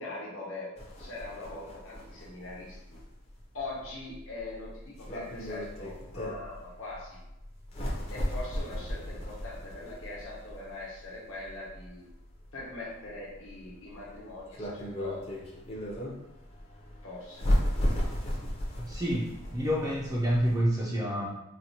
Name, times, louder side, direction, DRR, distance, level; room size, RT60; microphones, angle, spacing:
voice 1, 0.0-3.0 3.5-7.2 8.1-12.0 12.5-15.2 17.0-17.4, left 2 dB, 65° left, -4 dB, 1.0 m, -42 dB
sound 1, 0.8-20.6, equal, 30° left, 0.6 m, -35 dB
voice 2, 18.8-21.3, equal, 15° right, -4 dB, 0.4 m, -28 dB
4.1 x 2.1 x 2.8 m, 0.91 s
head